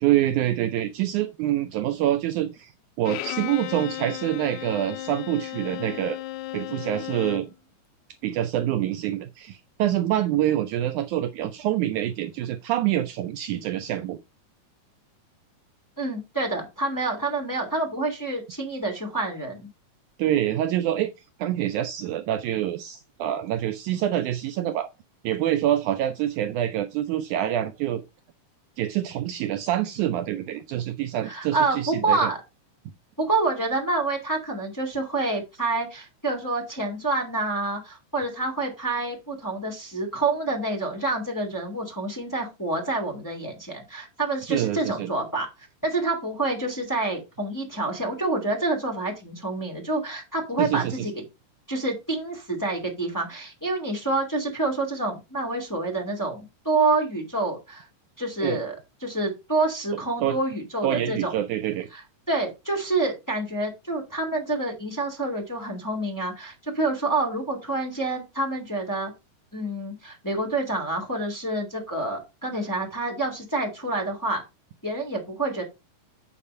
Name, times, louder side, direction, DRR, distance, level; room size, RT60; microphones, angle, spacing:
voice 1, 0.0-2.7 3.0-6.2 6.5-7.5 8.2-14.2 20.2-21.1 21.4-24.9 25.2-28.0 28.8-32.3 44.5-45.1 50.6-50.9 58.4-58.6 60.2-60.4 60.8-61.9, right 12 dB, 80° right, 1.9 m, -26 dB
Bowed string instrument, 3.1-7.6, left 15 dB, 90° left, 1.6 m, -35 dB
voice 2, 16.0-19.7 31.2-32.4 33.2-51.1 51.7-57.9 58.2-61.3 61.9-69.1 69.5-74.4 74.8-75.6, right 2 dB, 5° left, 1.7 m, -27 dB
8.7 x 4.5 x 5.4 m
omnidirectional pair, 3.9 m